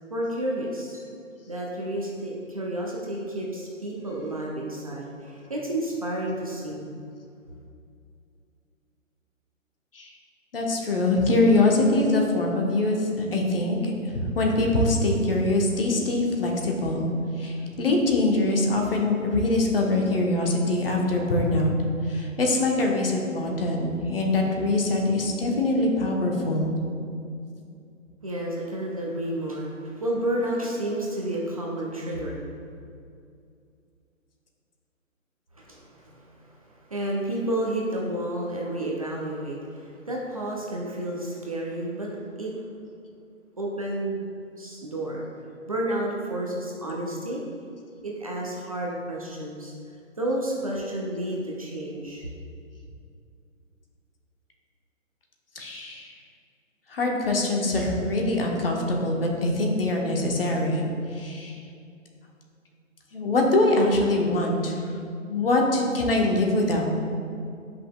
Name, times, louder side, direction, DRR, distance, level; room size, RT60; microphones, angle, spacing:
voice 1, 0.1-1.1 1.5-6.9 28.2-32.4 35.6-42.6 43.6-44.2 44.6-45.2 45.7-47.4 48.0-49.7 50.2-52.2, right 1 dB, 25° right, -3 dB, 0.5 m, -31 dB
voice 2, 10.5-17.1 17.4-21.7 22.1-26.7 55.5-56.1 56.9-60.8 61.1-61.6 63.1-64.8 65.3-66.9, left 2 dB, 45° left, 0 dB, 1.1 m, -23 dB
9.6 x 5.6 x 2.3 m, 2.4 s
figure-of-eight pair, 140°, 40 cm